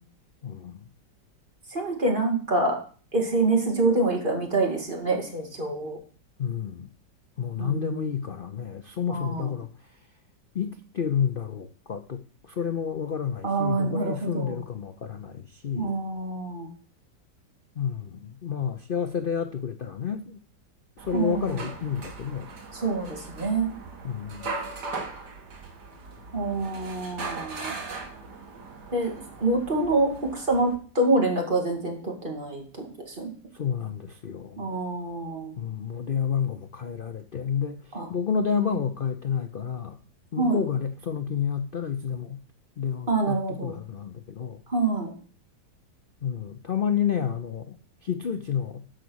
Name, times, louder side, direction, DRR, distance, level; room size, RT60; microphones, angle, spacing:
voice 1, 0.4-0.9 6.4-6.9 7.4-10.0 10.5-16.0 17.8-20.4 21.0-22.5 24.0-24.6 33.5-34.7 35.6-40.0 40.3-42.4 42.8-44.6 46.2-48.8, left 7 dB, 80° left, 8 dB, 0.4 m, -30 dB
voice 2, 1.7-2.8 3.1-6.0 7.6-8.1 9.1-9.5 13.4-14.6 15.7-16.7 21.1-21.6 22.7-23.7 26.3-27.8 28.9-29.1 29.4-33.3 34.6-35.5 37.9-38.1 38.6-38.8 40.4-40.6 43.1-43.8 44.7-45.1, right 2 dB, 25° right, 1 dB, 2.5 m, -26 dB
sound 1, 21.0-30.8, right 4 dB, 65° right, 2.4 m, -39 dB
13.0 x 5.3 x 6.4 m, 0.42 s
omnidirectional pair, 2.0 m